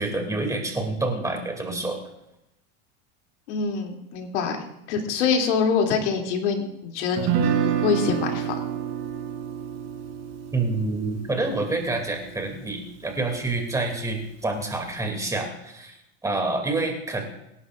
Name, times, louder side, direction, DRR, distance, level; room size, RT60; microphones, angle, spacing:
voice 1, 0.0-2.0 10.5-16.0 16.2-17.2, right 2 dB, 10° right, 2 dB, 2.7 m, -27 dB
voice 2, 3.5-7.3 7.6-8.6, left 5 dB, 75° left, 1 dB, 2.9 m, -25 dB
Guitar, 7.2-13.3, right 8 dB, 55° right, 4.0 m, -29 dB
25.5 x 11.0 x 2.5 m, 0.83 s
supercardioid pair, 140°, 35 cm